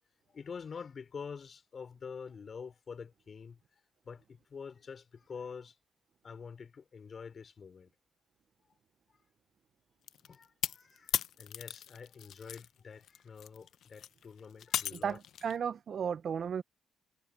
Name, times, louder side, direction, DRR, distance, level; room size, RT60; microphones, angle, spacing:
voice 1, 0.3-3.6 4.0-5.8 6.2-7.9 10.2-15.2, left 6 dB, 45° left, 3.6 m, -47 dB
sound 1, 10.1-12.7 13.0-15.5, left 10 dB, 70° left, 0.8 m, -37 dB
voice 2, 14.9-16.6, right 7 dB, 55° right, 0.7 m, -34 dB
cardioid pair, 90°, 0 cm